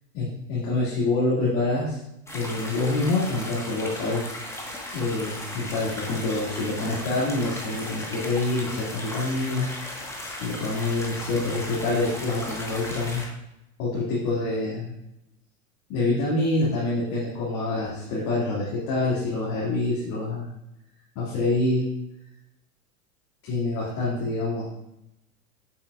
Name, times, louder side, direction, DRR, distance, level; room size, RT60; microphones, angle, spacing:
voice 1, 0.1-2.0 2.3-4.2 4.9-9.9 10.4-13.2 13.8-14.9 15.9-20.5 21.2-21.9 23.4-24.7, left 2 dB, 45° left, -7 dB, 2.5 m, -26 dB
sound 1, 2.3-13.3, left 1 dB, 5° left, 1.5 m, -36 dB
8.5 x 7.5 x 2.5 m, 0.88 s
hypercardioid pair, 95°, 43 cm